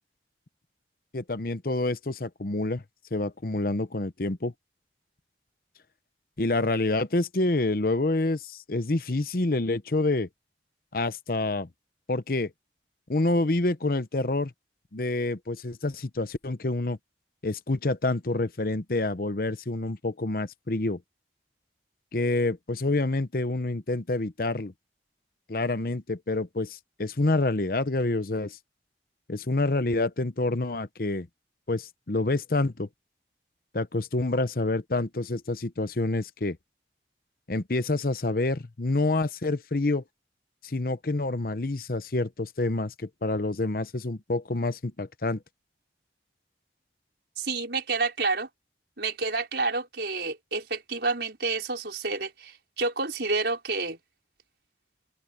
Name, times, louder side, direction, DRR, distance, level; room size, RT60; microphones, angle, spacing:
voice 1, 1.1-2.8 3.1-4.5 6.4-10.3 10.9-11.7 12.1-12.5 13.1-14.5 14.9-17.0 17.4-21.0 22.1-24.7 25.5-28.6 29.3-31.3 31.7-32.9 33.7-36.6 37.5-40.0 40.6-45.4, left 2 dB, 55° left, 0.9 m, -27 dB
voice 2, 47.4-48.5 49.0-54.0, right 3 dB, 70° right, 4.6 m, -29 dB
open air
head